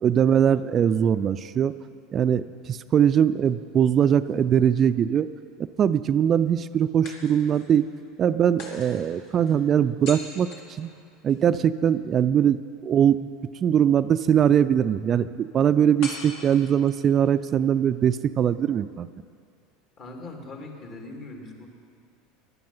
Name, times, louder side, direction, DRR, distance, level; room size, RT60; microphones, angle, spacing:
voice 1, 0.0-1.7 2.1-5.3 5.8-7.9 8.2-10.9 11.2-13.3 13.6-19.1, right 9 dB, 40° right, 12 dB, 0.4 m, -21 dB
sound 1, 3.9-5.0 7.0-7.8 8.6-11.4 16.0-17.1, left 2 dB, 65° left, 2.8 m, -42 dB
voice 2, 20.0-21.7, left 2 dB, 50° left, 1 dB, 2.9 m, -40 dB
16.0 x 11.5 x 5.6 m, 2.2 s
hypercardioid pair, 85°, 0 cm